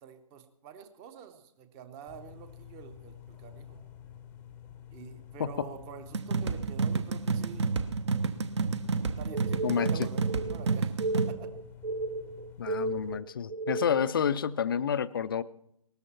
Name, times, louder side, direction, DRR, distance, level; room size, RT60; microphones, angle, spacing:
voice 1, 0.0-3.8 4.9-7.7 9.2-11.5, right 7 dB, 15° right, 10 dB, 0.9 m, -47 dB
sound 1, 2.1-13.2, left 10 dB, 10° left, 0.8 m, -49 dB
voice 2, 5.4-5.7 9.6-10.1 12.6-15.4, left 7 dB, 35° left, 16 dB, 0.5 m, -29 dB
sound 2, 6.1-11.3, right 4 dB, 50° right, 1.0 m, -30 dB
sound 3, 9.3-14.2, right 2 dB, 85° right, 1.0 m, -35 dB
18.5 x 13.5 x 4.4 m, 0.76 s
figure-of-eight pair, 140°, 19 cm